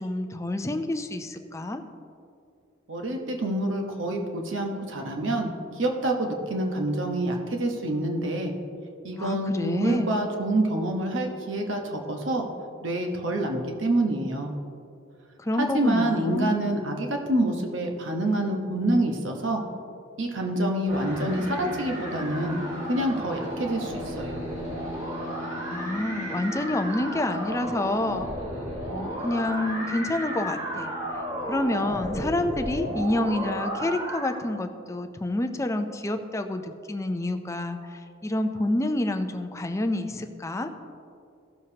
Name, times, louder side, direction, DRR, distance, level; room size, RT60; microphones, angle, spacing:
voice 1, 0.0-1.8 9.2-10.3 15.4-16.8 25.6-28.3 28.6-30.9 31.4-40.7, left 1 dB, 15° left, 6 dB, 0.4 m, -28 dB
voice 2, 2.9-8.5 9.0-12.5 12.8-14.5 15.6-19.6 20.2-22.6 22.9-24.4, right 1 dB, 65° right, 2 dB, 1.0 m, -27 dB
sound 1, 20.9-34.3, equal, 35° right, 2.4 m, -33 dB
15.5 x 6.9 x 2.8 m, 2.4 s
head